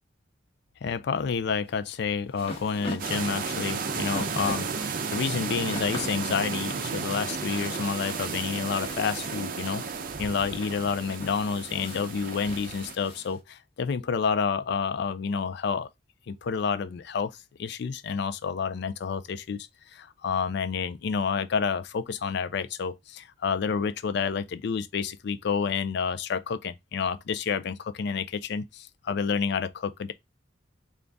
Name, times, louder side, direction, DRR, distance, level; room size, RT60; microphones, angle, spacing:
voice 1, 0.8-9.8 10.2-15.9 16.3-17.3 17.6-30.1, left 6 dB, 65° left, 0.4 m, -29 dB
sound 1, 1.7-13.4, left 1 dB, 35° left, 1.1 m, -42 dB
sound 2, 3.0-12.9, right 5 dB, 50° right, 0.5 m, -33 dB
3.8 x 2.4 x 3.4 m
head